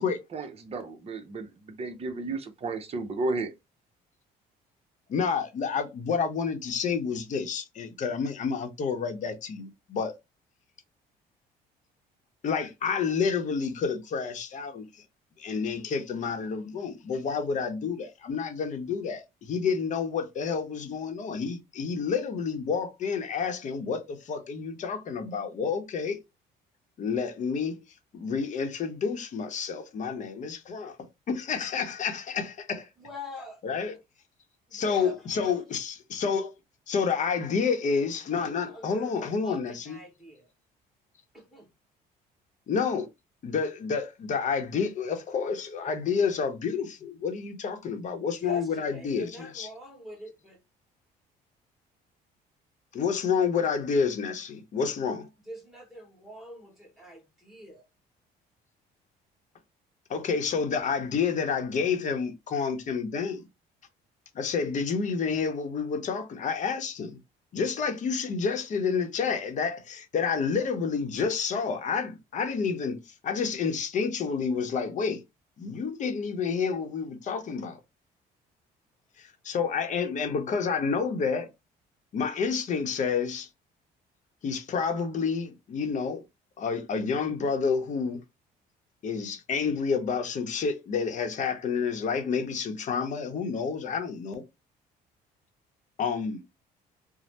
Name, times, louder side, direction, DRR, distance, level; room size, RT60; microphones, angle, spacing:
voice 1, 0.0-3.5, right 3 dB, 35° right, 0.7 m, -33 dB
voice 2, 5.1-10.1 12.4-14.9 15.4-26.2 27.0-27.8 28.1-32.9 33.6-33.9 34.7-36.5 36.9-40.0 42.7-43.1 43.4-49.7 52.9-55.3 60.1-63.5 64.3-67.2 67.5-75.2 75.6-77.8 79.2-81.5 82.1-83.5 84.4-86.2 86.6-88.2 89.0-94.4 96.0-96.4, left 5 dB, 45° left, 0.8 m, -29 dB
voice 3, 33.0-33.6 34.7-35.6 38.4-39.1 39.4-40.5 41.3-41.7 48.4-50.6 55.4-57.8 64.7-64.8, left 1 dB, ahead, 1.4 m, -44 dB
3.1 x 2.0 x 2.8 m
cardioid pair, 110°, 17 cm